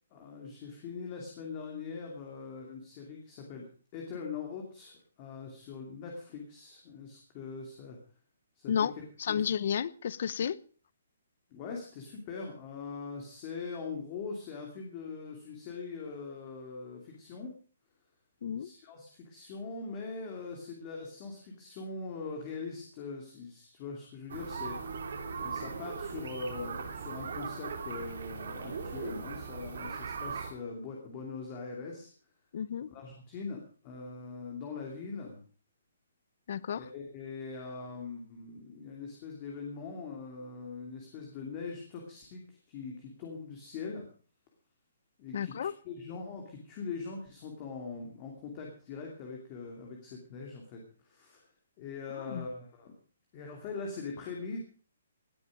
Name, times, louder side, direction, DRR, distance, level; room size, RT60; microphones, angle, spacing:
voice 1, 0.1-3.7 3.9-8.0 8.6-9.5 11.5-17.5 18.6-25.0 25.4-32.1 32.9-35.4 36.7-44.1 45.2-51.5 51.8-52.9 53.3-54.6, left 4 dB, 25° left, 2.7 m, -42 dB
voice 2, 9.2-10.6 18.4-18.7 32.5-32.9 36.5-36.8 45.3-45.7 52.3-52.5, left 8 dB, 50° left, 0.7 m, -31 dB
sound 1, 24.3-30.5, right 5 dB, 65° right, 3.2 m, -39 dB
18.5 x 9.9 x 5.2 m
hypercardioid pair, 170°, 0 cm